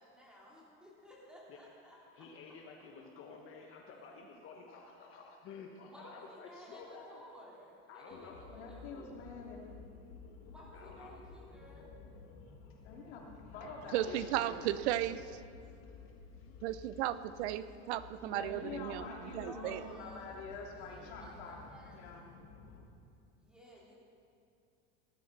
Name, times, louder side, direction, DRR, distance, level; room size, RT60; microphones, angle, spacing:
voice 1, 0.0-2.3 5.8-9.3 10.5-11.9 19.4-20.4 20.8-22.1 23.4-23.9, equal, 5° right, -5 dB, 3.7 m, -56 dB
voice 2, 2.1-7.2 7.9-8.4 10.7-11.2 13.6-14.6 15.8-16.0 16.3-17.0 17.7-17.8 18.2-18.3, left 4 dB, 40° left, 1 dB, 1.3 m, -52 dB
sound 1, 8.1-22.8, left 4 dB, 65° left, 2.0 m, -54 dB
voice 3, 8.5-9.9 12.8-14.7 18.2-22.3, left 3 dB, 85° left, -1 dB, 2.9 m, -46 dB
voice 4, 13.9-15.4 16.6-19.1 19.3-19.8, right 13 dB, 85° right, 15 dB, 0.6 m, -35 dB
18.5 x 12.5 x 4.2 m, 2.4 s
supercardioid pair, 140°, 32 cm